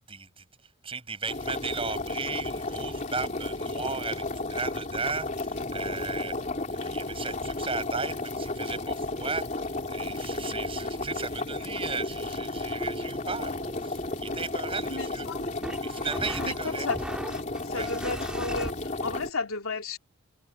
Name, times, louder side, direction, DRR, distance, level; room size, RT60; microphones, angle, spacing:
voice 1, 0.1-0.4 0.8-15.3 15.8-16.9 17.6-17.9, right 4 dB, 25° right, 7.1 m, -36 dB
sound 1, 1.3-19.3, left 2 dB, 35° left, 3.2 m, -33 dB
sound 2, 12.8-18.7, equal, 5° right, 2.4 m, -39 dB
voice 2, 14.9-15.4 16.4-17.0 17.6-18.7 19.0-20.0, left 3 dB, 75° left, 3.3 m, -33 dB
head